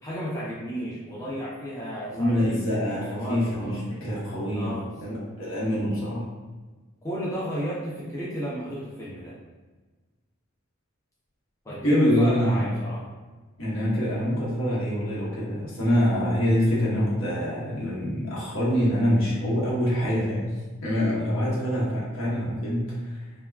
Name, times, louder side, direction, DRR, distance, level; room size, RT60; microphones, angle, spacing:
voice 1, 0.0-3.8 4.5-4.9 7.0-9.3 11.6-13.1, equal, 15° left, -8 dB, 0.4 m, -33 dB
voice 2, 2.1-6.3 11.8-12.7 13.6-20.5 20.8-23.2, equal, 70° left, -7 dB, 0.9 m, -25 dB
3.4 x 2.1 x 2.3 m, 1.3 s
head